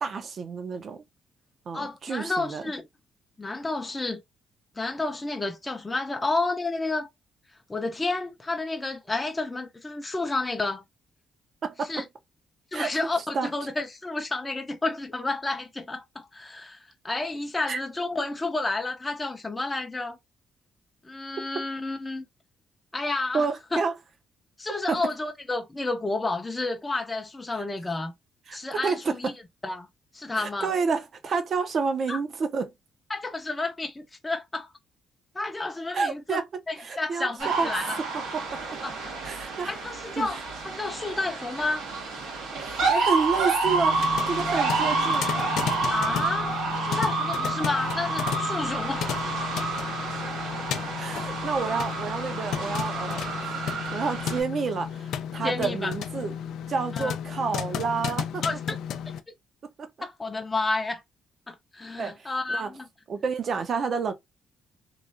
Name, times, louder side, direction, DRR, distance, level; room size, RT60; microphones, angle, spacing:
voice 1, 0.0-1.0 1.7-2.7 11.6-12.0 12.7-12.9 13.3-13.5 17.7-17.8 23.3-23.9 24.9-25.0 28.5-29.3 30.4-32.7 35.9-37.7 38.3-38.8 39.2-39.7 40.2-40.3 42.6-45.4 51.0-56.3 56.7-58.5 59.8-59.9 62.0-62.7 63.1-64.1, right 5 dB, 55° right, 0.6 m, -29 dB
voice 2, 1.7-2.9 3.4-4.2 4.8-7.1 7.7-10.8 11.8-12.0 12.7-20.2 21.0-22.3 22.9-23.8 24.6-28.1 28.5-29.3 29.6-29.9 30.1-30.7 32.1-32.2 33.1-34.7 35.3-36.4 36.7-38.0 38.8-39.0 39.2-40.4 40.6-41.8 45.9-49.2 51.7-51.8 55.4-56.0 56.9-57.1 58.4-58.8 60.0-61.0 61.5-62.9, left 3 dB, 20° left, 0.5 m, -31 dB
sound 1, 37.4-54.4, right 3 dB, 90° right, 1.2 m, -29 dB
sound 2, 43.6-59.2, left 8 dB, 80° left, 0.3 m, -33 dB
3.1 x 2.4 x 2.4 m
cardioid pair, 90°, 0 cm